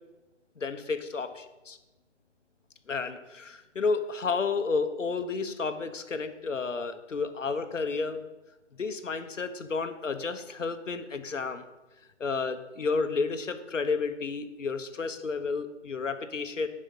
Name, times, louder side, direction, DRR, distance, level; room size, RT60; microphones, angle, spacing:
voice 1, 0.6-1.8 2.9-8.3 8.8-11.6 12.2-16.7, left 4 dB, 90° left, 9 dB, 1.0 m, -31 dB
10.0 x 5.4 x 5.4 m, 1.1 s
figure-of-eight pair, 150°, 37 cm